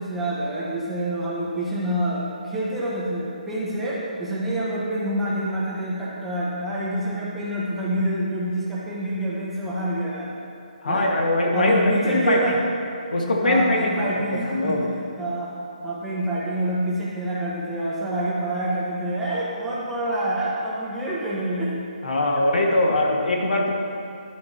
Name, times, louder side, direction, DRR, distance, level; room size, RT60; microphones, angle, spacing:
voice 1, 0.0-10.3 10.8-11.1 11.5-12.6 13.4-14.9 15.2-15.5 15.8-21.7, right 1 dB, 5° right, -8 dB, 1.4 m, -27 dB
voice 2, 10.8-12.6 13.1-14.9 22.0-23.8, left 1 dB, 80° left, 0 dB, 1.9 m, -22 dB
11.5 x 10.5 x 3.0 m, 2.4 s
hypercardioid pair, 170°, 5 cm